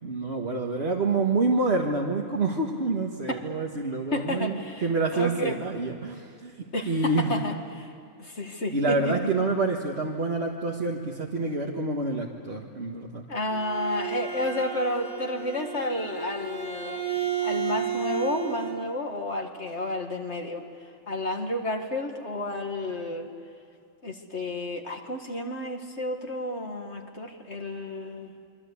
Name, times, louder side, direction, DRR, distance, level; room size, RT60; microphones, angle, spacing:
voice 1, 0.0-7.3 8.7-13.2, right 3 dB, 50° right, -1 dB, 1.9 m, -27 dB
voice 2, 4.1-5.6 6.7-7.9 8.2-9.1 13.3-17.0 17.4-20.6 21.1-23.3 24.0-28.3, left 1 dB, 55° left, 3 dB, 2.4 m, -31 dB
Bowed string instrument, 13.3-18.8, right 8 dB, 90° right, 2.3 m, -32 dB
28.5 x 23.5 x 8.4 m, 2.5 s
omnidirectional pair, 1.3 m